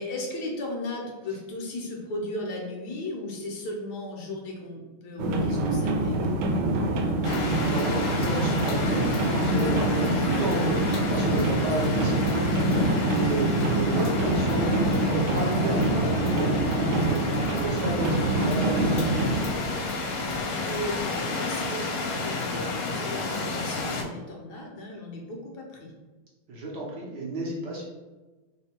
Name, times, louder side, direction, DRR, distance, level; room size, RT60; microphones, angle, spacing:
voice 1, 0.0-6.2 20.7-25.9, left 1 dB, 65° left, 0 dB, 1.1 m, -36 dB
sound 1, 5.2-19.5, right 2 dB, 90° right, 1.5 m, -25 dB
sound 2, 7.2-24.0, left 3 dB, 80° left, 1.4 m, -31 dB
voice 2, 7.6-10.8 11.1-12.3 12.6-19.6 26.5-27.8, right 2 dB, 65° right, -4 dB, 1.2 m, -32 dB
3.5 x 2.2 x 4.2 m, 1.2 s
omnidirectional pair, 2.3 m